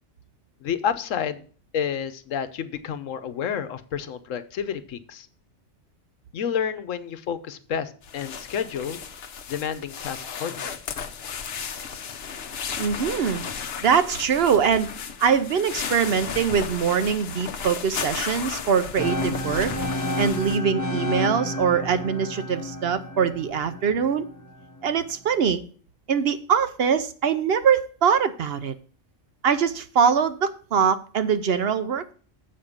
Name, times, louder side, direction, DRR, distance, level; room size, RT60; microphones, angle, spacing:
voice 1, 0.6-1.4 1.7-5.3 6.3-9.0 9.5-10.8, left 8 dB, 85° left, 12 dB, 1.1 m, -30 dB
sound 1, 8.0-20.6, left 6 dB, 55° left, 0.9 m, -34 dB
voice 2, 12.8-13.4 13.8-14.9 15.2-19.7 20.2-24.3 24.8-25.6 26.1-28.7 29.4-32.1, right 7 dB, 60° right, 11 dB, 0.8 m, -23 dB
sound 2, 19.0-24.9, left 1 dB, 20° left, 0.6 m, -31 dB
7.5 x 5.1 x 7.1 m, 0.42 s
omnidirectional pair, 1.3 m